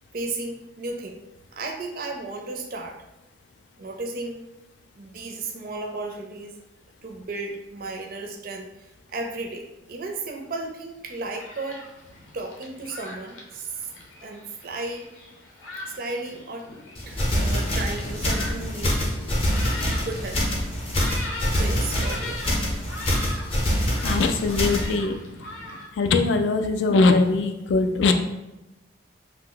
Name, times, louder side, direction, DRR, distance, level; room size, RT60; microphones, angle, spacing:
voice 1, 0.1-1.2 1.5-3.0 3.8-4.5 5.0-6.6 7.0-11.8 12.3-13.7 14.2-15.3 15.9-16.7 17.1-19.0 20.0-20.4 21.5-22.6, right 2 dB, 50° right, 3 dB, 0.4 m, -34 dB
Thunderstorm, 11.1-25.9, left 2 dB, 85° left, 0.7 m, -40 dB
sound 1, 17.0-24.9, equal, 30° left, 0.6 m, -25 dB
voice 2, 24.0-25.1 26.0-28.1, left 3 dB, 70° left, 7 dB, 0.3 m, -21 dB
2.8 x 2.1 x 3.8 m, 0.99 s
head